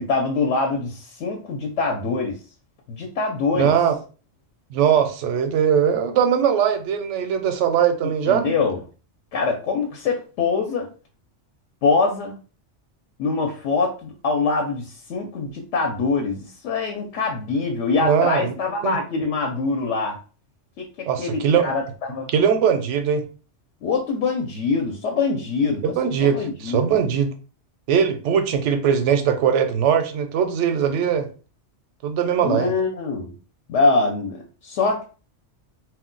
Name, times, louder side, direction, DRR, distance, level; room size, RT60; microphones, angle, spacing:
voice 1, 0.0-2.4 2.9-3.7 8.3-8.8 9.3-10.9 11.8-12.3 13.2-20.2 20.8-22.3 23.8-25.8 26.2-26.8 32.4-33.3 33.7-35.1, left 4 dB, 80° left, 0.9 m, -24 dB
voice 2, 3.6-3.9 4.7-8.5 18.0-18.5 18.8-19.0 21.1-21.7 22.3-23.2 25.8-27.3 27.9-31.3 32.0-32.7, right 8 dB, 80° right, 0.9 m, -20 dB
2.3 x 2.1 x 3.7 m
omnidirectional pair, 1.2 m